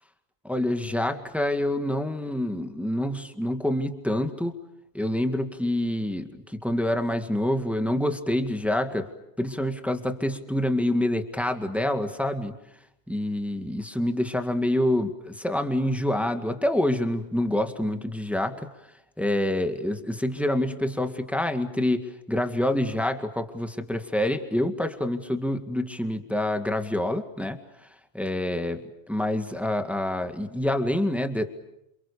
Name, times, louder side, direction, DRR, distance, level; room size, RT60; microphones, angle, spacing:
voice 1, 0.4-4.5 4.9-9.1 9.4-12.6 13.1-18.7 19.2-27.6 28.1-31.4, left 1 dB, ahead, 6 dB, 2.0 m, -27 dB
28.5 x 28.0 x 6.9 m, 0.82 s
omnidirectional pair, 1.2 m